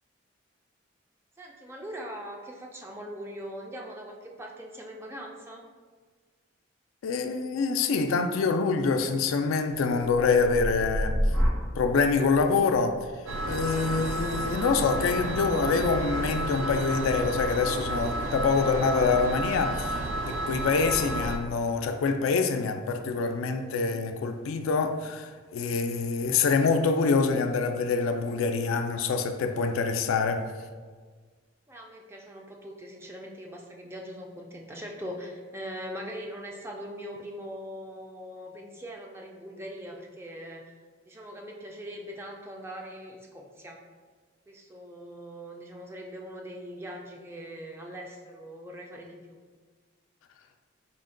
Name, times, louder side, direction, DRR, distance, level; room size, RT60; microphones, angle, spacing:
voice 1, 1.4-5.7 31.7-40.7 41.1-43.8 44.5-49.4, equal, 10° right, 0.3 m, -41 dB
voice 2, 7.0-11.2 11.8-13.0 13.5-30.4, left 4 dB, 85° left, 0.3 m, -26 dB
sound 1, 9.9-17.7 18.2-18.7, equal, 65° right, 1.1 m, -33 dB
sound 2, 13.3-21.4, right 1 dB, 85° right, 0.4 m, -31 dB
4.1 x 2.2 x 3.7 m
head